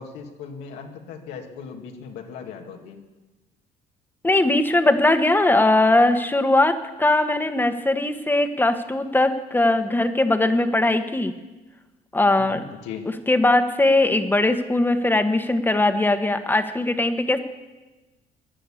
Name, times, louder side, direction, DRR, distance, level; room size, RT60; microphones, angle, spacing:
voice 1, 0.0-3.0 12.4-13.1, left 6 dB, 90° left, 2 dB, 2.1 m, -38 dB
voice 2, 4.2-11.3 12.1-12.6 13.3-17.4, left 2 dB, 10° left, 8 dB, 1.3 m, -20 dB
16.0 x 10.5 x 8.5 m, 1.2 s
cardioid pair, 110°, 17 cm